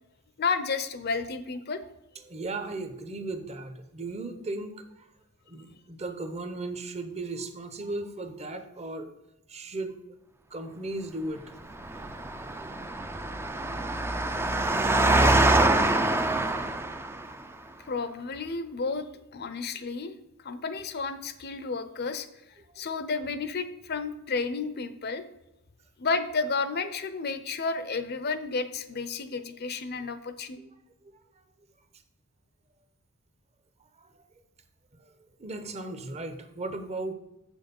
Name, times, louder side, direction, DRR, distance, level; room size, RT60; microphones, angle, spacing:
voice 1, 0.4-1.8 17.9-20.1 20.4-22.3 22.8-25.2 26.0-30.6, left 4 dB, 45° left, 12 dB, 0.6 m, -31 dB
voice 2, 2.2-5.1 5.5-9.1 9.5-10.0 10.5-11.6 11.9-12.8 22.7-22.8 30.6-30.7 34.0-34.2 34.9-35.1 35.4-37.1, right 2 dB, 30° right, 9 dB, 0.8 m, -37 dB
Engine, 11.7-17.4, right 2 dB, 10° right, 0.4 m, -25 dB
7.2 x 6.3 x 5.3 m, 0.90 s
head